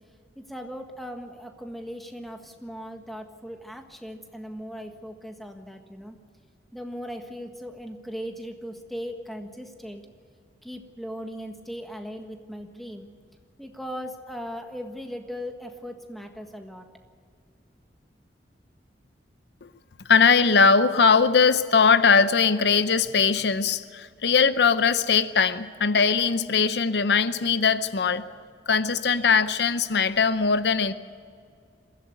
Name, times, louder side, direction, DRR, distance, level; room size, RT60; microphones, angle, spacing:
voice 1, 0.4-6.2 6.7-10.1 10.6-13.1 13.6-16.9, equal, ahead, 1.5 m, -38 dB
voice 2, 20.1-28.3 28.7-30.9, left 5 dB, 75° left, 0.7 m, -20 dB
22.0 x 15.5 x 8.0 m
head